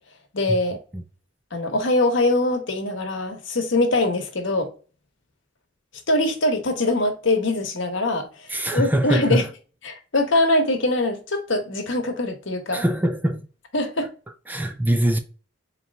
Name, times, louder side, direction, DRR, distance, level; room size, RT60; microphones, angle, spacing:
voice 1, 0.3-0.8 1.5-4.7 6.1-8.3 8.7-9.4 9.8-12.8 13.7-14.1, left 2 dB, 70° left, 1.0 m, -22 dB
voice 2, 8.5-9.5 12.7-13.4 14.5-15.2, right 1 dB, 10° right, 0.4 m, -22 dB
4.2 x 2.8 x 3.4 m
head